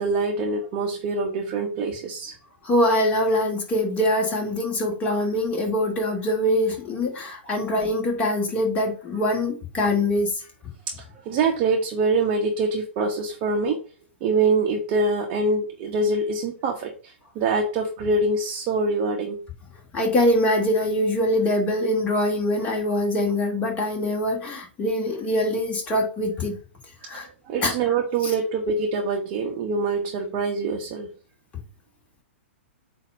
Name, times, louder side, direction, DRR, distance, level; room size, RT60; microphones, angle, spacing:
voice 1, 0.0-2.3 11.2-13.8 14.2-19.4 27.4-31.1, right 3 dB, 35° right, 0 dB, 1.1 m, -24 dB
voice 2, 2.6-10.5 19.9-26.6 27.0-27.3 27.6-27.7 28.2-28.3, left 1 dB, 20° left, 1 dB, 2.4 m, -23 dB
8.3 x 2.9 x 5.2 m, 0.38 s
figure-of-eight pair, 110°, 6 cm